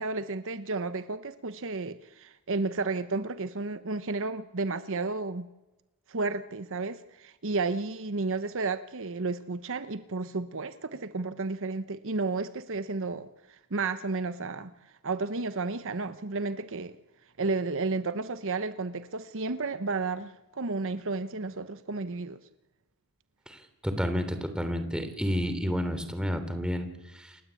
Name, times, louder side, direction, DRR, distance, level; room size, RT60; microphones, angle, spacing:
voice 1, 0.0-5.5 6.1-14.7 15.0-17.0 17.4-22.4, right 3 dB, 60° right, 1.0 m, -32 dB
voice 2, 23.5-27.4, equal, 5° right, 3.3 m, -31 dB
29.0 x 20.0 x 8.4 m
head